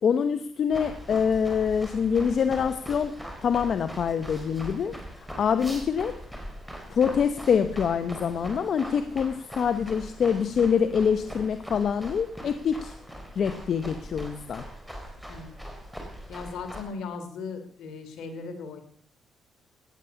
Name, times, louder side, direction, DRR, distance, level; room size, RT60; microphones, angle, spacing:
voice 1, 0.0-5.0 5.4-6.2 6.9-12.9 13.4-14.6, left 7 dB, 55° left, 10 dB, 0.9 m, -25 dB
sound 1, 0.7-16.8, equal, ahead, 4.3 m, -41 dB
voice 2, 16.3-18.8, left 4 dB, 75° left, 6 dB, 2.8 m, -37 dB
16.5 x 9.9 x 7.0 m, 0.62 s
cardioid pair, 90°, 0 cm